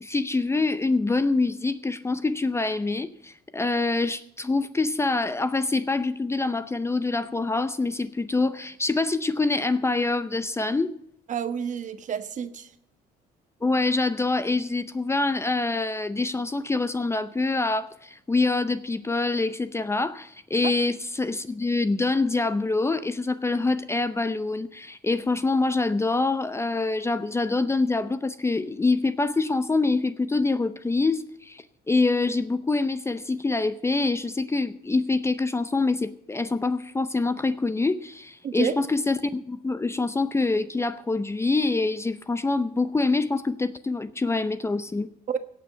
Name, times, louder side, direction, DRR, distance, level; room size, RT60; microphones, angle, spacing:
voice 1, 0.0-10.9 13.6-45.1, left 3 dB, 15° left, 13 dB, 0.6 m, -25 dB
voice 2, 11.3-12.7 38.4-38.7 45.3-45.4, right 8 dB, 45° right, 10 dB, 1.2 m, -29 dB
17.0 x 6.2 x 7.9 m, 0.73 s
cardioid pair, 110°, 17 cm